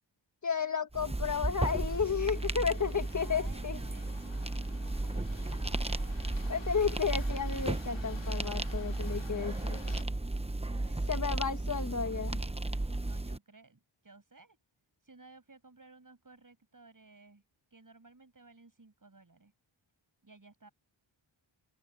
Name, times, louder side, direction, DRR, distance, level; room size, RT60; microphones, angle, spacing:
voice 1, 0.4-3.8 6.5-9.9 11.1-12.4, left 6 dB, 40° left, 1.4 m, -32 dB
sound 1, 0.9-13.4, right 2 dB, 10° right, 0.9 m, -34 dB
sound 2, 1.7-10.0, left 5 dB, 65° left, 2.9 m, -53 dB
voice 2, 3.1-6.3 10.7-11.7 12.9-14.6 15.0-17.4 17.7-19.5 20.2-20.7, right 3 dB, 40° right, 7.9 m, -57 dB
open air
wide cardioid pair, 65°, 48 cm